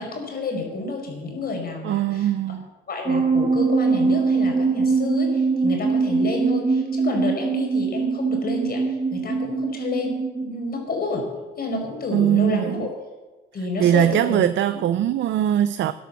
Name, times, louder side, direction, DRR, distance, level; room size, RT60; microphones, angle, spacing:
voice 1, 0.0-2.3 2.9-11.2 11.6-12.9 13.5-14.5 14.7-14.8, left 3 dB, 50° left, 5.0 m, -29 dB
voice 2, 1.8-2.7 12.1-12.9 13.8-15.9, right 11 dB, 70° right, 0.6 m, -21 dB
sound 1, 3.1-10.5, right 4 dB, 35° right, 2.1 m, -22 dB
13.0 x 10.5 x 7.2 m
cardioid pair, 90°, 20 cm